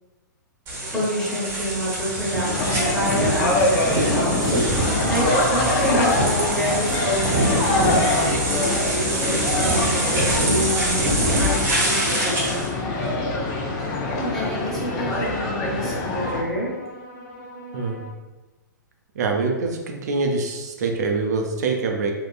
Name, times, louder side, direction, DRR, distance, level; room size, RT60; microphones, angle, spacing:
sound 1, 0.7-12.7, right 1 dB, 25° right, 1.0 m, -24 dB
sound 2, 0.8-18.1, equal, 60° left, 1.3 m, -40 dB
voice 1, 0.9-4.5 5.0-11.6 11.9-12.5 14.1-16.7, equal, ahead, -9 dB, 1.2 m, -28 dB
sound 3, 2.4-16.4, left 2 dB, 35° left, 0.5 m, -25 dB
voice 2, 19.2-22.1, right 3 dB, 55° right, 2 dB, 0.5 m, -24 dB
3.6 x 2.2 x 2.4 m, 1.1 s
figure-of-eight pair, 110°, 11 cm